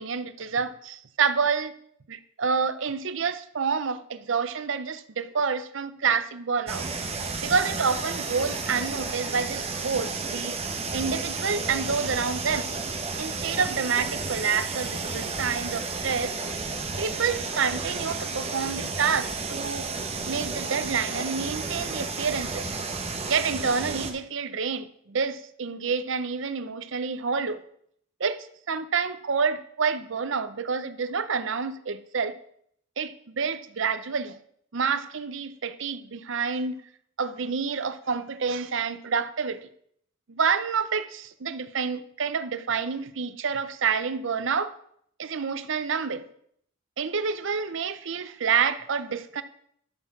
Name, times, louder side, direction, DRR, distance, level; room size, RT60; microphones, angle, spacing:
voice 1, 0.0-1.7 2.1-6.9 7.4-10.6 10.9-12.7 13.2-16.4 17.0-19.9 20.3-22.7 23.3-27.6 28.2-32.4 33.0-34.4 34.7-36.8 37.2-39.7 40.3-44.8 45.2-46.3 47.0-49.4, right 5 dB, 60° right, 0.6 m, -28 dB
sound 1, 6.7-24.1, right 4 dB, 30° right, 1.0 m, -32 dB
13.0 x 4.5 x 5.9 m
head